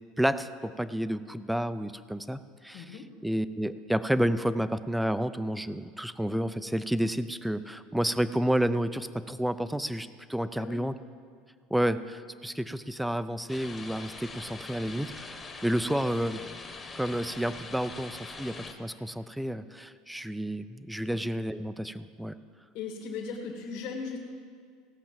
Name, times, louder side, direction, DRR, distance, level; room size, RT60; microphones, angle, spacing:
voice 1, 0.2-2.8 3.2-10.9 11.7-16.4 16.9-22.3, right 1 dB, ahead, 13 dB, 0.4 m, -30 dB
voice 2, 2.7-3.1 10.6-10.8 21.1-21.2 22.7-24.2, left 5 dB, 60° left, -2 dB, 1.8 m, -37 dB
sound 1, 13.5-18.7, left 3 dB, 15° left, 1.1 m, -43 dB
16.5 x 5.8 x 7.4 m, 2.1 s
supercardioid pair, 145°, 0 cm